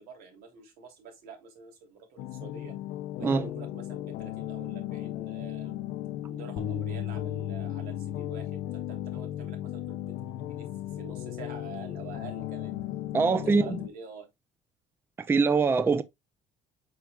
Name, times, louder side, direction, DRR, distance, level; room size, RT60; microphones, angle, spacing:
voice 1, 0.0-2.8 3.2-5.8 6.3-12.7 13.2-14.3, right 5 dB, 80° right, 3.3 m, -47 dB
sound 1, 2.2-13.9, left 13 dB, 90° left, 0.7 m, -37 dB
sound 2, 6.6-12.8, left 9 dB, 50° left, 0.8 m, -38 dB
voice 2, 13.1-13.8 15.2-16.0, right 4 dB, 15° right, 0.4 m, -23 dB
7.8 x 5.9 x 2.3 m
cardioid pair, 165°, 15 cm